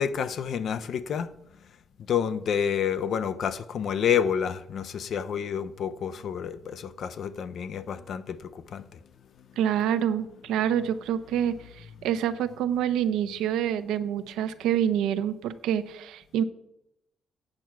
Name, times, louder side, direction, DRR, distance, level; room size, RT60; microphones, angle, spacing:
voice 1, 0.0-1.3 2.1-9.0, left 8 dB, 65° left, 0.6 m, -29 dB
voice 2, 9.6-16.4, right 9 dB, 90° right, 0.6 m, -27 dB
8.6 x 4.6 x 7.4 m
cardioid pair, 90°, 0 cm